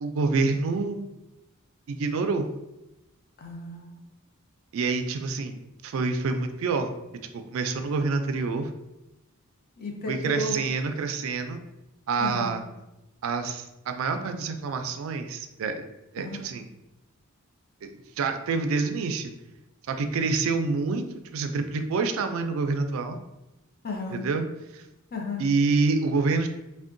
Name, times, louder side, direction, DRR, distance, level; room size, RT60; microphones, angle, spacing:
voice 1, 0.0-1.1 1.9-2.5 4.7-7.0 7.3-8.7 10.1-11.6 12.1-12.6 13.2-15.9 16.1-16.7 17.8-19.3 19.9-23.2 24.1-24.4 24.7-24.8 25.4-26.5, right 4 dB, 70° right, 7 dB, 0.3 m, -27 dB
voice 2, 3.4-3.9 9.8-10.6 12.2-12.6 16.2-16.5 23.8-24.3 25.1-25.5, left 1 dB, 45° left, 1 dB, 0.5 m, -33 dB
3.5 x 2.1 x 2.5 m, 0.95 s
head